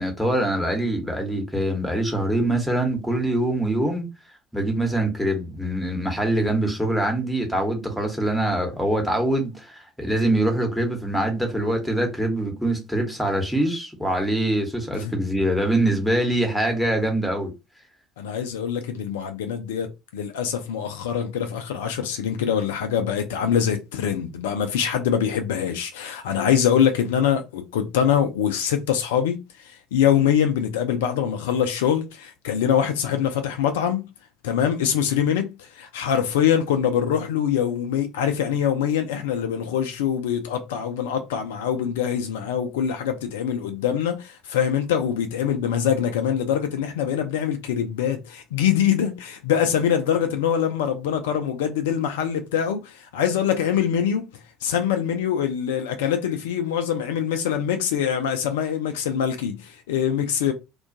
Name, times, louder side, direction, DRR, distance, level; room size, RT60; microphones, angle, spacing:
voice 1, 0.0-4.1 4.5-17.5, right 1 dB, ahead, 0.9 m, -24 dB
voice 2, 18.2-34.1 34.4-54.3 54.6-60.5, left 8 dB, 70° left, 0.3 m, -24 dB
2.2 x 2.1 x 2.5 m
figure-of-eight pair, 60°, 0 cm